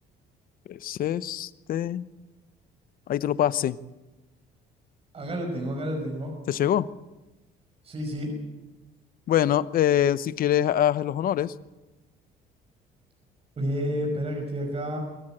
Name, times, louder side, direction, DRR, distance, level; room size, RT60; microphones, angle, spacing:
voice 1, 0.7-2.0 3.1-3.8 6.5-6.9 9.3-11.5, left 11 dB, 60° left, 16 dB, 0.9 m, -24 dB
voice 2, 5.1-6.3 7.8-8.3 13.6-15.0, equal, 35° right, 2 dB, 5.5 m, -30 dB
24.0 x 14.5 x 8.9 m, 1.1 s
cardioid pair, 110°, 17 cm